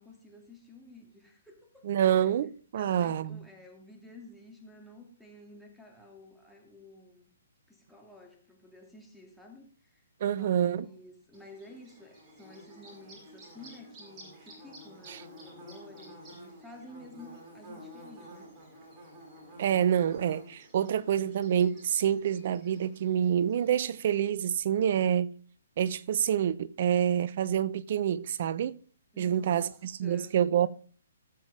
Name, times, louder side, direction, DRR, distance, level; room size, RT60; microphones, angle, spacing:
voice 1, 0.0-2.3 2.7-7.3 7.7-10.0 10.3-18.5 29.1-30.7, left 1 dB, ahead, 2.8 m, -52 dB
voice 2, 1.8-3.4 10.2-10.9 15.1-15.2 19.6-25.3 25.8-28.8 29.2-30.7, right 9 dB, 50° right, 0.8 m, -27 dB
Bird / Buzz, 11.3-24.2, equal, 20° right, 7.2 m, -51 dB
19.0 x 7.3 x 3.6 m
hypercardioid pair, 140°, 0 cm